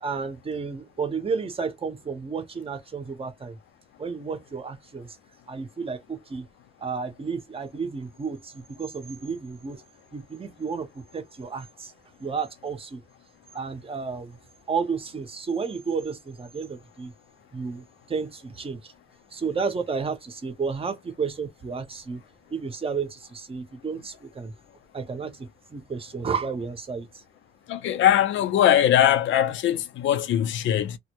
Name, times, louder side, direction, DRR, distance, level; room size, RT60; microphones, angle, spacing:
voice 1, 0.0-3.6 4.0-5.2 5.5-6.5 6.8-9.8 10.1-11.9 12.2-13.0 13.5-14.4 14.7-17.1 17.5-18.9 19.3-22.2 22.5-24.5 24.9-27.1, right 5 dB, 30° right, 0.7 m, -32 dB
voice 2, 27.7-31.0, left 11 dB, 75° left, 0.5 m, -21 dB
2.1 x 2.1 x 2.8 m
cardioid pair, 90°, 20 cm